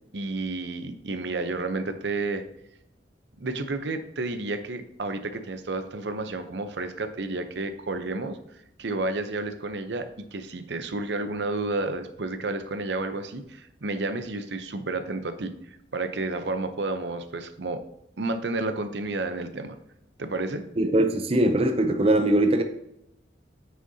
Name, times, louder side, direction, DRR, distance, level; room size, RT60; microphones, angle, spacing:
voice 1, 0.1-2.4 3.4-17.8 18.2-19.8 20.2-20.6, right 2 dB, 70° right, 9 dB, 0.7 m, -31 dB
voice 2, 20.8-22.6, right 1 dB, 35° right, 7 dB, 0.6 m, -21 dB
9.3 x 6.4 x 2.8 m, 0.82 s
head